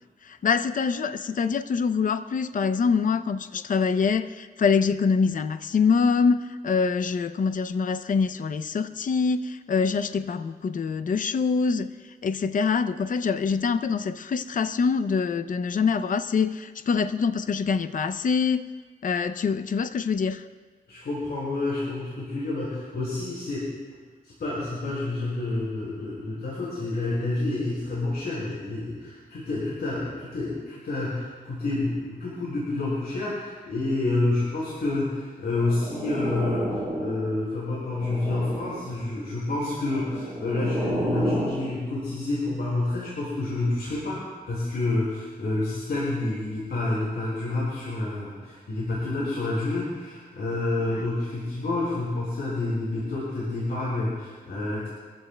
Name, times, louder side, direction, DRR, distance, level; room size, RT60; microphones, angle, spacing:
voice 1, 0.2-18.7 19.0-20.4 50.9-51.0, left 5 dB, 55° left, 10 dB, 0.5 m, -25 dB
voice 2, 20.9-23.7 24.2-54.9, left 2 dB, 85° left, -8 dB, 4.9 m, -29 dB
sound 1, 35.5-37.3 37.7-38.9 39.8-41.6, right 1 dB, ahead, 5.3 m, -31 dB
24.5 x 15.0 x 2.2 m, 1.4 s
wide cardioid pair, 105°, 16 cm